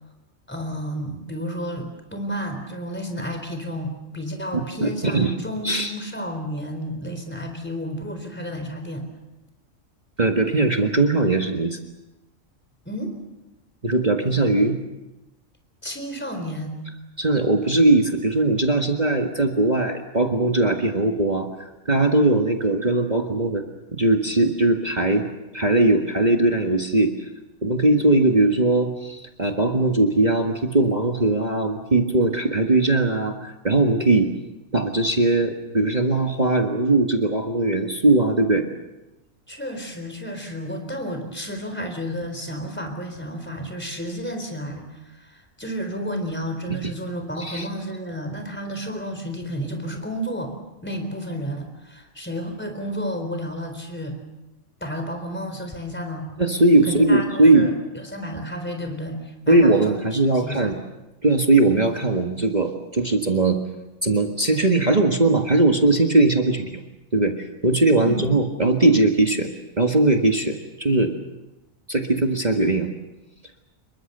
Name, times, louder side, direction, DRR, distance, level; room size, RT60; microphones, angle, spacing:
voice 1, 0.5-9.1 12.9-13.1 15.8-16.8 39.5-50.5 50.8-54.2 54.8-56.3 56.8-57.7 58.0-60.7 68.0-68.3, equal, 10° left, 5 dB, 4.0 m, -31 dB
voice 2, 4.5-5.3 5.6-6.0 10.2-11.8 13.8-14.8 17.2-23.6 23.9-25.3 25.5-27.1 27.6-34.3 34.7-38.6 46.7-46.9 47.4-47.7 56.4-57.7 59.5-60.8 61.2-63.6 64.0-66.8 67.1-69.5 69.8-71.1 71.9-72.9, right 2 dB, 30° right, 3 dB, 1.8 m, -20 dB
27.5 x 23.0 x 6.8 m, 1.0 s
omnidirectional pair, 1.4 m